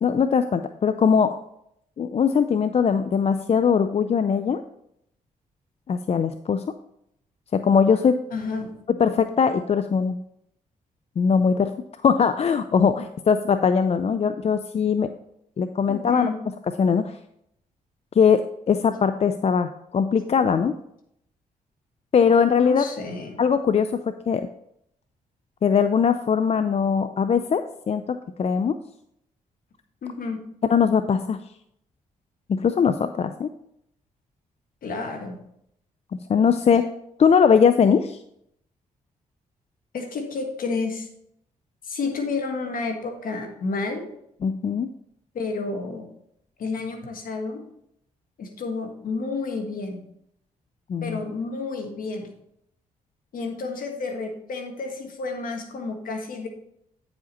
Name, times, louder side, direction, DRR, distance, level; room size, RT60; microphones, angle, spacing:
voice 1, 0.0-1.4 2.0-4.6 5.9-6.6 7.5-8.2 8.9-10.2 11.2-11.7 12.0-15.1 15.6-16.3 16.8-17.1 18.2-18.4 18.7-20.8 22.1-22.8 23.4-24.5 25.6-28.8 30.7-31.4 32.5-33.5 36.1-36.8 37.2-38.2 44.4-44.9 50.9-51.2, left 6 dB, 45° left, 10 dB, 0.4 m, -21 dB
voice 2, 8.3-8.8 15.9-16.3 22.5-23.4 30.0-30.4 34.8-35.4 39.9-41.1 41.8-44.0 45.3-46.1 46.6-47.6 48.4-50.0 51.0-52.3 53.3-56.5, left 3 dB, 70° left, 4 dB, 1.6 m, -30 dB
9.1 x 5.0 x 4.1 m, 0.75 s
cardioid pair, 60°, 15 cm